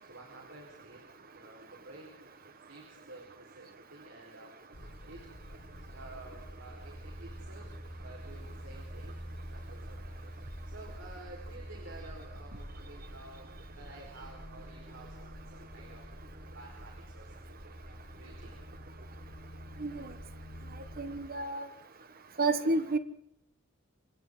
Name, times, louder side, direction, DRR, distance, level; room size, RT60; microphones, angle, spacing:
voice 1, 0.0-4.6 5.1-5.2 5.9-7.7 8.0-9.2 9.5-10.2 10.6-16.1 16.5-18.5, right 2 dB, 70° right, 0 dB, 4.8 m, -52 dB
sound 1, 4.7-21.3, equal, 60° left, 2.7 m, -47 dB
voice 2, 19.8-20.1 21.0-21.6 22.4-23.0, right 3 dB, 45° right, 10 dB, 1.4 m, -30 dB
28.0 x 25.0 x 3.9 m, 0.72 s
head